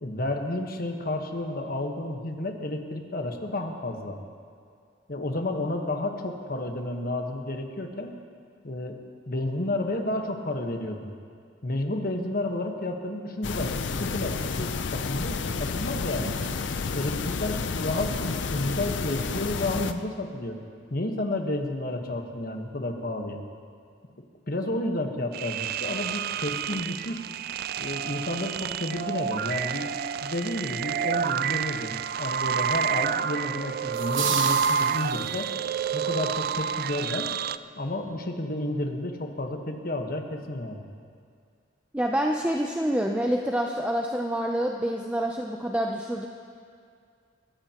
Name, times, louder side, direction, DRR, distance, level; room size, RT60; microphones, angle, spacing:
voice 1, 0.0-4.2 5.1-8.1 8.6-9.0 9.3-11.1 11.6-16.3 16.9-20.6 20.9-23.4 24.5-27.2 27.8-29.9 30.2-35.5 35.9-37.3 37.7-40.8, left 1 dB, 50° left, 3 dB, 1.3 m, -31 dB
sound 1, 13.4-19.9, left 4 dB, 70° left, 0.6 m, -30 dB
sound 2, 25.3-37.6, right 8 dB, 55° right, 0.3 m, -29 dB
sound 3, 33.9-35.5, right 6 dB, 85° right, 1.3 m, -32 dB
voice 2, 41.9-46.3, equal, 5° right, 1 dB, 0.6 m, -27 dB
21.5 x 15.5 x 3.0 m, 2.2 s
head